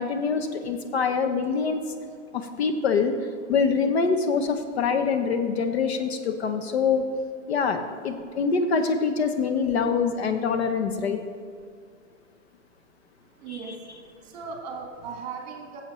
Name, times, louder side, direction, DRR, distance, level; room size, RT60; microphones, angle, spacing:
voice 1, 0.0-1.8 2.3-7.0 7.5-11.2 13.5-13.6, left 5 dB, 55° left, 7 dB, 0.9 m, -25 dB
voice 2, 13.3-13.9 14.2-15.8, right 5 dB, 30° right, 2 dB, 1.7 m, -37 dB
14.5 x 7.4 x 3.1 m, 2.2 s
hypercardioid pair, 155°, 39 cm